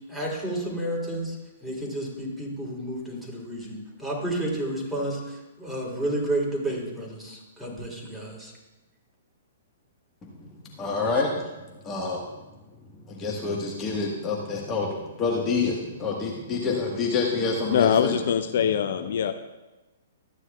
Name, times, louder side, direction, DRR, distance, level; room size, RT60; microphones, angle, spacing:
voice 1, 0.1-1.4 1.6-8.5, right 1 dB, 5° right, -4 dB, 3.1 m, -31 dB
voice 2, 10.7-11.5 11.8-12.2 13.1-18.2, left 4 dB, 20° left, -2 dB, 1.4 m, -27 dB
voice 3, 17.7-19.3, left 8 dB, 55° left, 9 dB, 0.5 m, -23 dB
13.5 x 9.6 x 2.3 m, 1.1 s
figure-of-eight pair, 115°, 0 cm